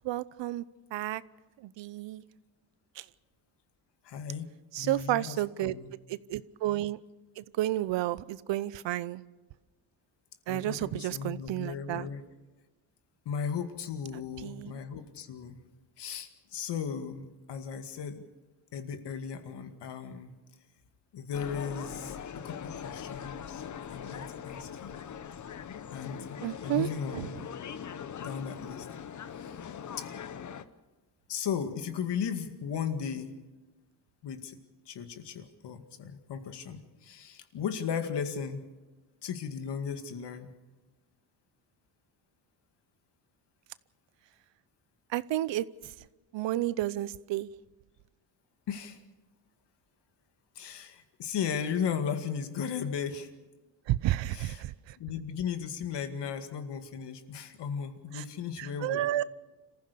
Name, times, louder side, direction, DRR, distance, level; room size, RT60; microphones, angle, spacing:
voice 1, 0.0-0.6 0.9-1.2 1.6-2.2 3.0-3.1 4.7-5.8 6.1-7.0 7.4-9.2 10.5-12.1 14.4-14.8 26.4-27.3 45.1-45.9 46.3-47.5 53.9-55.0 58.1-58.2 58.6-59.2, right 14 dB, 75° right, 18 dB, 0.8 m, -31 dB
voice 2, 4.0-5.9 10.5-12.2 13.3-15.6 16.0-18.2 18.7-20.4 21.1-23.6 23.9-25.1 25.9-27.3 28.2-28.9 29.4-29.6 30.0-30.1 31.3-33.4 34.2-34.6 34.9-38.7 39.2-40.5 48.7-49.0 50.6-53.3 54.3-54.6 55.0-59.1, left 7 dB, 65° left, 7 dB, 2.2 m, -36 dB
sound 1, 21.3-30.6, left 8 dB, 40° left, 0.9 m, -41 dB
28.0 x 15.0 x 6.8 m, 1.2 s
cardioid pair, 125°, 45 cm